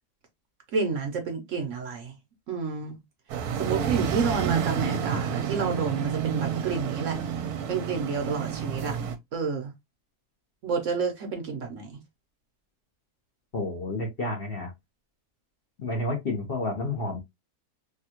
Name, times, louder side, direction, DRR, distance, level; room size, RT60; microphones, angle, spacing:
voice 1, 0.7-2.1 2.5-3.0 3.6-7.2 7.7-9.0 9.3-9.7 10.6-12.0, right 5 dB, 60° right, 1.0 m, -30 dB
sound 1, 3.3-9.2, right 7 dB, 75° right, 1.1 m, -29 dB
voice 2, 13.5-14.7 15.8-17.2, left 2 dB, 45° left, 0.8 m, -30 dB
3.5 x 2.3 x 2.8 m
omnidirectional pair, 1.7 m